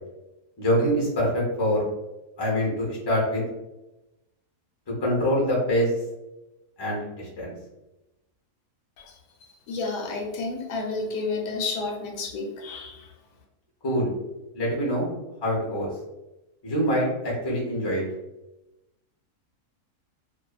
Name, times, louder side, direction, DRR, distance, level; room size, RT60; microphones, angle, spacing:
voice 1, 0.6-1.8 2.4-3.4 5.0-5.9 6.8-7.5 13.8-14.1 14.5-15.1 15.4-15.9 16.6-18.0, equal, 30° left, -4 dB, 0.4 m, -24 dB
voice 2, 9.7-13.1, left 3 dB, 90° left, 1 dB, 1.2 m, -31 dB
2.6 x 2.4 x 2.3 m, 0.99 s
omnidirectional pair, 1.7 m